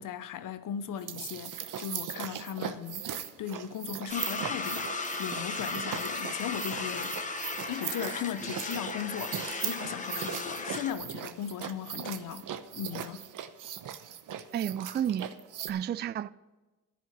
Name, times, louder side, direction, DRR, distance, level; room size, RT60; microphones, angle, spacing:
voice 1, 0.0-3.1 3.4-7.2 7.7-12.5 12.7-13.3, left 9 dB, 65° left, 1.0 m, -37 dB
sound 1, 0.9-15.7, right 9 dB, 65° right, 1.0 m, -39 dB
sound 2, 4.1-10.9, left 3 dB, 20° left, 1.3 m, -36 dB
voice 2, 14.5-15.3 15.7-16.3, right 10 dB, 30° right, 0.3 m, -31 dB
10.5 x 10.5 x 6.0 m
supercardioid pair, 75°, 35 cm